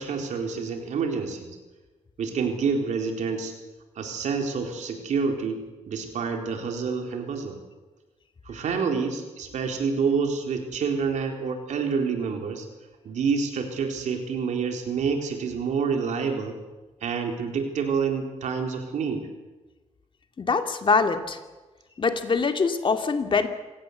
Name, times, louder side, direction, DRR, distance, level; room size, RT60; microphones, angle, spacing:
voice 1, 0.0-1.5 2.2-3.5 4.0-7.6 8.4-12.7 13.0-16.6 17.0-19.2, right 5 dB, 90° right, 3 dB, 4.0 m, -28 dB
voice 2, 20.4-21.4 22.0-23.5, left 4 dB, 45° left, 6 dB, 2.3 m, -23 dB
27.0 x 17.5 x 8.2 m, 1.2 s
cardioid pair, 110°, 12 cm